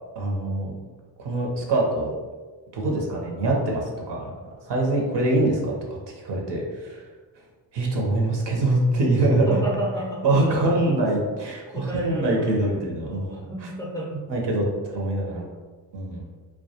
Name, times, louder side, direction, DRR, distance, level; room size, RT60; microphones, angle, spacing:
voice 1, 0.2-0.7 1.2-2.1 2.7-4.3 4.7-5.7 6.2-7.1 7.7-9.6 10.2-13.5 14.3-15.5 15.9-16.3, right 2 dB, 65° right, -1 dB, 0.7 m, -24 dB
voice 2, 9.2-11.1 11.7-14.2, right 1 dB, 10° left, -5 dB, 0.5 m, -33 dB
2.2 x 2.2 x 2.7 m, 1.4 s
cardioid pair, 75°, 46 cm